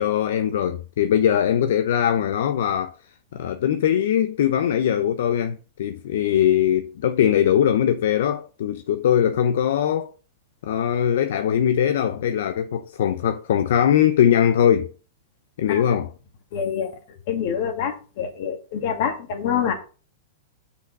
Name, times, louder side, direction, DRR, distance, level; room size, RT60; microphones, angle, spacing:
voice 1, 0.0-2.9 3.3-10.1 10.6-14.9 15.6-16.1, left 9 dB, 70° left, 0.7 m, -21 dB
voice 2, 16.5-16.9 17.3-19.7, left 8 dB, 55° left, 2.2 m, -26 dB
6.6 x 5.6 x 5.4 m
hypercardioid pair, 140°, 0 cm